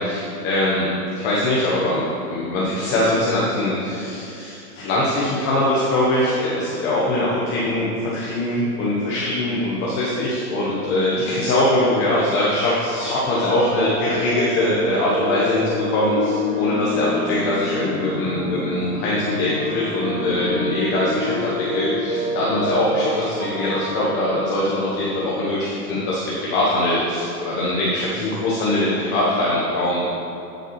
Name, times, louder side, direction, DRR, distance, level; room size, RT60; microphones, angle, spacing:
voice 1, 0.0-2.0 2.3-30.0, left 1 dB, 20° left, -6 dB, 1.0 m, -22 dB
sound 1, 12.5-24.4, left 1 dB, 20° right, 1.4 m, -28 dB
12.0 x 6.7 x 3.1 m, 2.8 s
hypercardioid pair, 145°, 48 cm